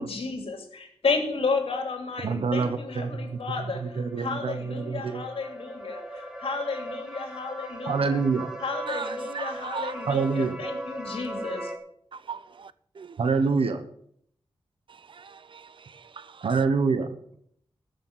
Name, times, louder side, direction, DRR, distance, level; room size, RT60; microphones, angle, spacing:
voice 1, 0.0-8.2 8.6-11.7, left 4 dB, 75° left, 3.0 m, -32 dB
voice 2, 2.2-5.3 7.8-8.5 10.1-10.6 13.2-13.8 16.4-17.2, right 5 dB, 75° right, 1.1 m, -26 dB
sound 1, 2.8-11.8, right 1 dB, 5° right, 2.3 m, -39 dB
voice 3, 8.9-9.9 12.1-12.7 13.0-13.2 15.1-15.7 16.2-16.3, right 5 dB, 55° right, 0.7 m, -37 dB
13.5 x 6.8 x 8.2 m
wide cardioid pair, 85°, 10 cm